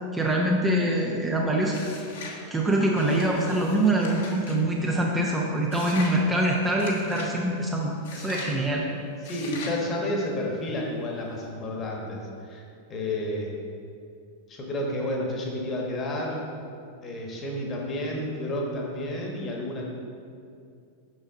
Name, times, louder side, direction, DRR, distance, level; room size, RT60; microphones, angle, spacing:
voice 1, 0.1-1.8 2.5-8.8, right 1 dB, 15° right, -1 dB, 0.7 m, -24 dB
sound 1, 1.7-2.4 2.9-4.6 5.7-6.2 6.8-7.3 8.0-8.6 9.2-9.8, left 3 dB, 55° left, 1.1 m, -40 dB
voice 2, 9.2-12.6 12.9-13.6 14.5-16.4 17.0-19.9, left 1 dB, 25° left, -1 dB, 1.3 m, -31 dB
6.4 x 6.1 x 3.8 m, 2.5 s
figure-of-eight pair, 90°, 0 cm